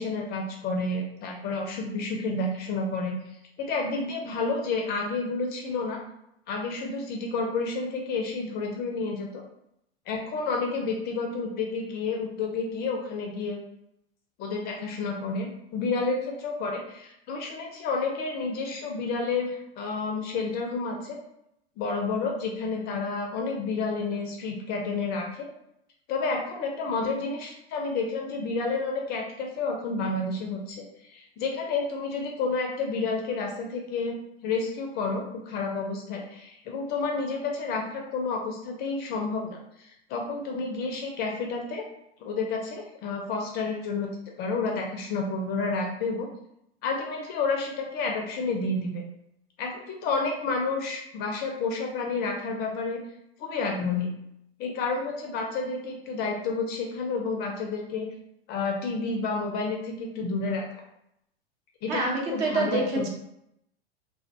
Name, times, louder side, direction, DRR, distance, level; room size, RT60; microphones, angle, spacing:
voice 1, 0.0-3.1 3.6-6.0 6.5-9.4 10.1-13.6 14.4-21.2 21.8-25.5 26.1-34.2 34.4-41.8 42.2-44.1 44.4-46.3 46.8-49.0 49.6-53.0 53.4-54.1 54.6-58.1 58.5-60.6 61.8-63.1, left 4 dB, 30° left, 1 dB, 0.4 m, -30 dB
voice 2, 61.9-63.1, right 3 dB, 45° right, 0 dB, 0.8 m, -27 dB
2.4 x 2.1 x 2.5 m, 0.79 s
hypercardioid pair, 105°, 32 cm